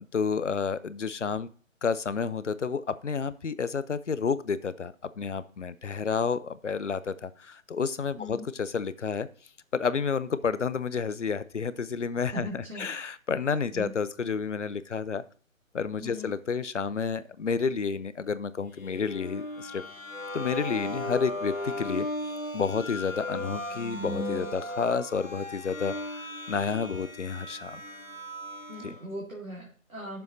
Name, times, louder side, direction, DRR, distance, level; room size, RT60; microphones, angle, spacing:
voice 1, 0.1-1.5 1.8-9.3 9.7-15.2 15.7-19.8 20.3-22.1 22.5-27.8 28.8-29.0, left 5 dB, 60° left, 15 dB, 0.7 m, -30 dB
voice 2, 12.3-12.9 13.7-13.9 16.0-16.4 28.7-30.2, equal, 85° right, -3 dB, 2.4 m, -39 dB
sound 1, 18.8-29.0, left 1 dB, 85° left, 2.1 m, -36 dB
11.5 x 7.0 x 2.6 m, 0.42 s
figure-of-eight pair, 145°, 40 cm